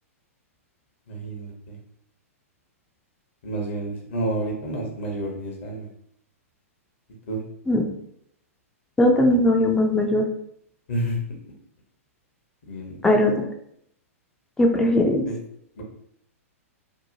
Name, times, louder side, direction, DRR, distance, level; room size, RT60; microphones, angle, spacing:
voice 1, 1.1-1.8 3.4-5.9 7.3-7.4 10.9-11.2 12.7-13.0 15.2-15.4 15.8-15.9, right 1 dB, 55° left, 0 dB, 0.8 m, -29 dB
voice 2, 9.0-10.2 13.0-13.3 14.6-15.2, left 1 dB, 5° left, 3 dB, 0.4 m, -19 dB
2.7 x 2.1 x 2.8 m, 0.70 s
figure-of-eight pair, 105°, 8 cm